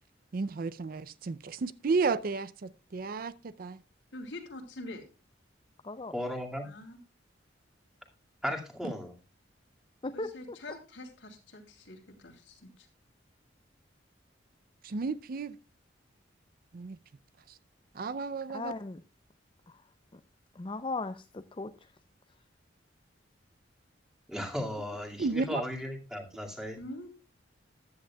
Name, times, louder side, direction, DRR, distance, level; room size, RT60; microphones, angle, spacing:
voice 1, 0.3-3.8 14.8-15.6 16.7-17.0 17.5-17.6 17.9-18.7 25.2-25.6, right 4 dB, 50° right, 0.4 m, -32 dB
voice 2, 4.1-5.0 6.6-7.0 10.1-12.9 26.8-27.1, left 1 dB, 75° left, 2.9 m, -45 dB
voice 3, 6.1-6.7 8.4-9.1 24.3-26.8, left 1 dB, 5° right, 2.1 m, -36 dB
voice 4, 10.0-10.6 18.5-19.0 19.7-19.8 20.6-21.7, left 3 dB, 25° left, 0.5 m, -37 dB
14.5 x 10.5 x 2.3 m
head